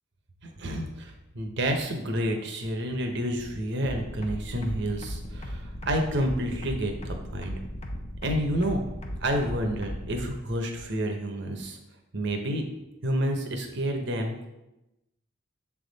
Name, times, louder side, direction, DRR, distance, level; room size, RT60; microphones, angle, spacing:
voice 1, 0.6-7.5 8.2-8.8 9.2-11.8 12.1-12.6 13.0-14.5, equal, 60° right, 4 dB, 0.9 m, -29 dB
sound 1, 3.8-10.2, equal, 30° left, 0.7 m, -36 dB
7.0 x 3.6 x 4.0 m, 0.93 s
head